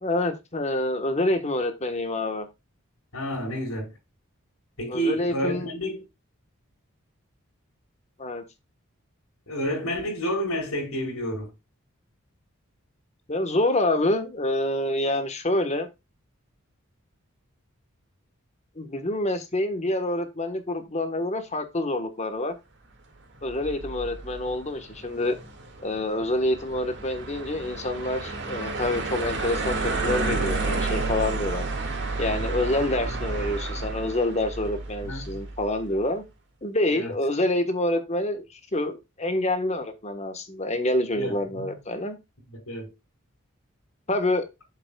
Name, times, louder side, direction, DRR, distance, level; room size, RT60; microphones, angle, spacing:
voice 1, 0.0-2.4 4.9-5.7 8.2-8.4 13.3-15.9 18.8-22.5 23.4-25.4 25.8-31.7 32.2-36.2 36.6-42.2 44.1-44.5, left 1 dB, 30° left, 1.3 m, -27 dB
voice 2, 3.1-3.9 4.8-6.0 9.5-11.5 35.0-35.2 36.9-37.1 41.1-41.8 42.7-42.9, equal, 80° left, 5.1 m, -30 dB
sound 1, 23.5-35.7, right 3 dB, 55° right, 2.2 m, -31 dB
7.9 x 7.5 x 2.3 m
head